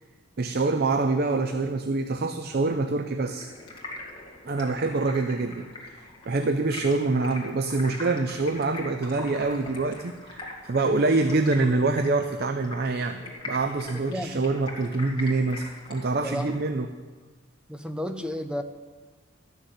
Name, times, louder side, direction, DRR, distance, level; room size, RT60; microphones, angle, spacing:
voice 1, 0.4-3.5 4.4-6.0 6.3-16.9, right 3 dB, 45° right, 8 dB, 0.5 m, -25 dB
Stream, 3.2-16.6, left 2 dB, 20° left, 2.1 m, -42 dB
voice 2, 13.9-14.4 16.2-16.8 17.7-18.6, equal, 5° right, 8 dB, 0.6 m, -33 dB
13.0 x 6.5 x 9.1 m, 1.4 s
head